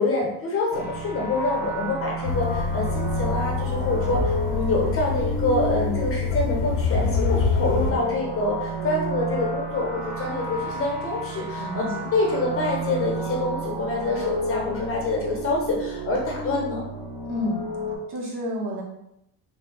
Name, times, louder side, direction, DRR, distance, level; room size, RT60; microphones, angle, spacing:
voice 1, 0.0-16.9, left 2 dB, 30° left, -2 dB, 0.9 m, -26 dB
sound 1, 0.7-18.0, right 2 dB, 20° right, 0.8 m, -32 dB
sound 2, 2.2-7.9, left 5 dB, 70° left, 0.6 m, -26 dB
voice 2, 11.6-12.1 17.2-17.6 18.1-18.8, equal, 70° right, -3 dB, 1.3 m, -30 dB
3.3 x 2.3 x 3.8 m, 0.82 s
cardioid pair, 155°, 42 cm